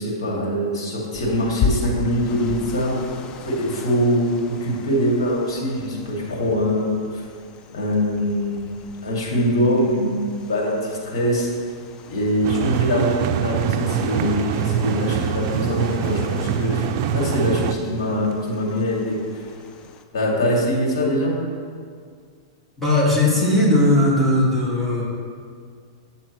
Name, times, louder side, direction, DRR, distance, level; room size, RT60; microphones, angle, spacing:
voice 1, 0.0-3.0 3.4-7.2 7.7-8.7 9.0-11.5 12.1-19.2 20.1-21.4, equal, 85° left, -3 dB, 2.2 m, -23 dB
sound 1, 1.1-20.1, left 5 dB, 30° left, 0.5 m, -36 dB
sound 2, 12.4-17.7, right 9 dB, 50° right, 0.4 m, -24 dB
voice 2, 22.8-25.0, left 1 dB, 5° left, -6 dB, 1.8 m, -18 dB
9.6 x 7.1 x 3.0 m, 2.1 s
hypercardioid pair, 135°, 3 cm